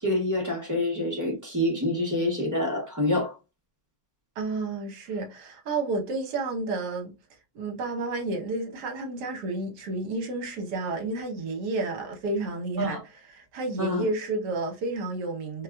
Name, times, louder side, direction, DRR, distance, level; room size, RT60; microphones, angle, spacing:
voice 1, 0.0-3.3 12.8-13.0 13.8-14.1, left 1 dB, 15° right, 0.6 m, -27 dB
voice 2, 4.4-7.1 7.5-13.0 13.3-15.6, right 3 dB, 70° right, 1.4 m, -31 dB
4.1 x 2.3 x 2.3 m
omnidirectional pair, 1.9 m